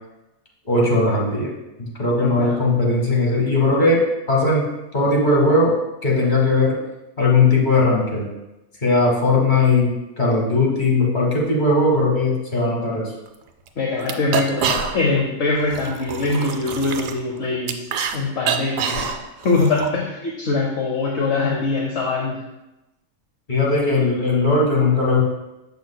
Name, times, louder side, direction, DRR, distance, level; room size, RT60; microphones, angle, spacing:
voice 1, 0.6-1.5 1.8-4.7 4.9-5.7 6.0-6.8 7.2-8.3 8.8-13.1 23.5-25.2, left 3 dB, 35° left, -3 dB, 1.5 m, -18 dB
voice 2, 2.2-2.6 13.8-17.8 18.1-19.1 19.4-22.4, left 3 dB, 55° left, 0 dB, 0.9 m, -23 dB
sound 1, 13.3-13.4 13.7-13.8 14.0-15.2 15.6-18.2 18.4-19.9, right 7 dB, 70° right, 0.9 m, -26 dB
7.1 x 6.0 x 2.2 m, 0.97 s
omnidirectional pair, 1.5 m